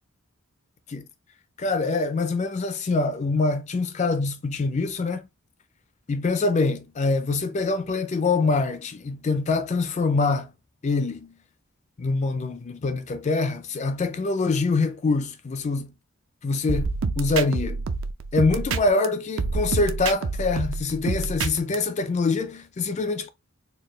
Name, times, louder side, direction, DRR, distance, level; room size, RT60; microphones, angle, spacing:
voice 1, 1.6-5.2 6.1-10.5 10.8-11.3 12.0-15.9 16.4-17.8 18.3-23.3, left 3 dB, 30° left, 0.3 m, -25 dB
sound 1, 16.7-19.1 19.4-21.8, right 4 dB, 60° right, 0.4 m, -27 dB
4.4 x 2.2 x 3.0 m
head